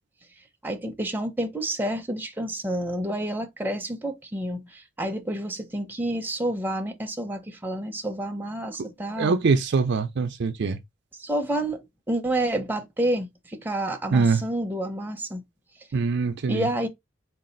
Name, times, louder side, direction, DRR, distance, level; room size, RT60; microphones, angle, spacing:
voice 1, 0.6-9.3 11.1-15.4 16.5-16.9, right 1 dB, 10° right, 0.6 m, -29 dB
voice 2, 9.2-10.8 14.1-14.4 15.9-16.7, right 4 dB, 55° right, 0.4 m, -23 dB
4.0 x 2.4 x 3.8 m
head